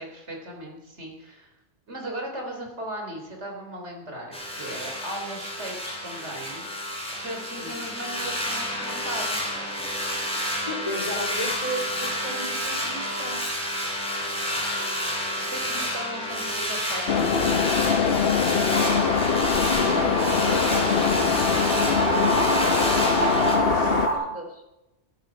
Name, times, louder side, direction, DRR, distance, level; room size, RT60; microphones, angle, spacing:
voice 1, 0.0-1.5 1.9-9.4 15.5-17.6, right 1 dB, 85° right, 1 dB, 3.8 m, -37 dB
sound 1, 4.3-23.6, equal, 5° left, 3.1 m, -30 dB
voice 2, 10.3-13.4 19.7-24.6, equal, 30° left, 2 dB, 2.8 m, -36 dB
sound 2, 17.1-24.1, left 6 dB, 60° left, 1.0 m, -23 dB
sound 3, 18.7-24.1, right 1 dB, 60° right, 4.1 m, -27 dB
14.0 x 11.5 x 5.9 m, 0.95 s
omnidirectional pair, 1.1 m